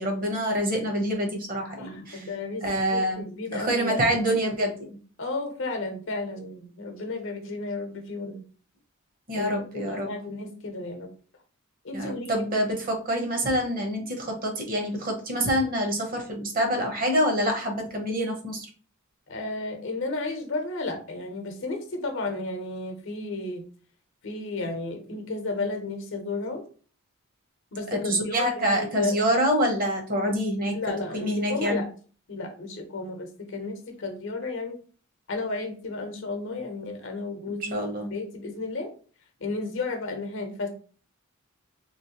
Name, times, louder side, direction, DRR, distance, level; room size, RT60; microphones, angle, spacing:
voice 1, 0.0-2.3 2.6-3.2 3.5-4.9 9.3-10.1 11.9-18.7 27.9-30.8 31.1-31.8 37.5-38.1, equal, 45° right, 3 dB, 0.9 m, -26 dB
voice 2, 1.8-4.1 5.2-8.4 9.3-11.1 11.8-12.5 19.3-23.7 24.2-26.6 27.7-29.2 30.7-31.9 32.3-34.8 35.3-38.9 39.4-40.7, left 3 dB, 65° left, 5 dB, 0.8 m, -33 dB
3.1 x 3.0 x 2.9 m, 0.40 s
head